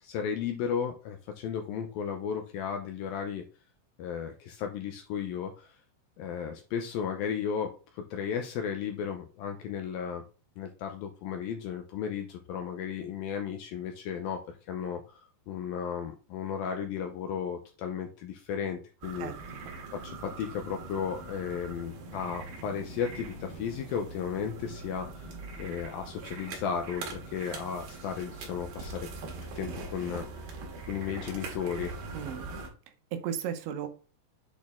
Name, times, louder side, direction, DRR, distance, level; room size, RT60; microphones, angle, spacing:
voice 1, 0.0-3.4 4.0-5.7 6.2-10.2 10.6-19.3 19.9-25.3 25.6-29.1 29.6-30.5 30.9-31.9, left 7 dB, 80° left, 5 dB, 2.1 m, -34 dB
sound 1, 19.0-32.7, right 3 dB, 65° right, 3.3 m, -42 dB
voice 2, 32.1-32.5 33.1-33.9, right 9 dB, 85° right, 8 dB, 3.3 m, -34 dB
8.4 x 4.2 x 3.6 m, 0.35 s
omnidirectional pair, 5.1 m